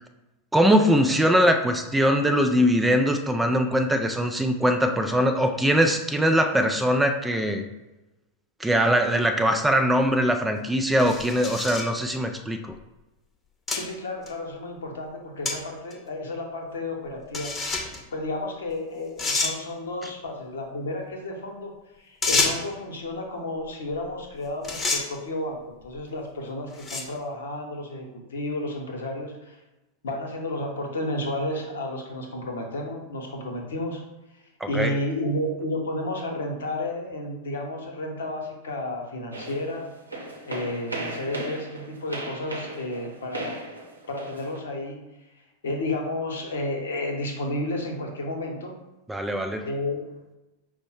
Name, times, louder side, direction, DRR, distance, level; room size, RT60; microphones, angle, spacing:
voice 1, 0.5-7.7 8.6-12.6 34.6-34.9 49.1-49.7, equal, 5° right, 6 dB, 0.4 m, -22 dB
sound 1, 10.1-10.2 11.0-11.9 12.7-12.8 13.7-13.8 14.3-14.4 15.4-15.6 15.9-16.0 17.3-18.0 18.7-18.8 19.2-19.5 22.2-22.7 24.1-24.3 24.6-25.0 25.8-26.1 26.7-27.2, left 3 dB, 15° left, 0.9 m, -27 dB
voice 2, 13.7-29.6 30.0-34.0 34.3-39.9 40.5-43.6 44.1-45.2 45.6-48.7 49.6-50.4, left 1 dB, 65° left, 2 dB, 0.9 m, -32 dB
sound 2, 39.3-44.6, right 2 dB, 85° right, 0.9 m, -36 dB
5.2 x 2.1 x 4.5 m, 1.0 s
figure-of-eight pair, 90°, 0 cm